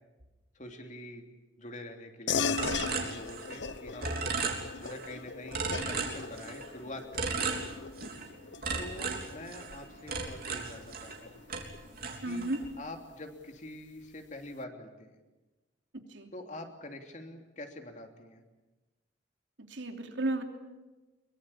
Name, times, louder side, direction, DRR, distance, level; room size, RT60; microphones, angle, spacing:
voice 1, 0.5-1.3 1.6-2.6 3.0-4.2 4.8-7.7 8.8-11.4 12.3-12.5 12.8-15.1 16.3-18.4, left 1 dB, 40° left, 4 dB, 3.1 m, -45 dB
sound 1, 2.3-12.1, left 5 dB, 75° left, 1.0 m, -38 dB
sound 2, 2.6-3.7 4.0-5.1 5.5-6.7 7.1-8.3 8.6-11.2 11.5-12.7, right 4 dB, 55° right, 3.5 m, -35 dB
voice 2, 12.2-12.6 16.1-16.3 19.7-20.4, right 2 dB, 90° right, 5 dB, 3.0 m, -33 dB
23.0 x 23.0 x 8.7 m, 1.1 s
head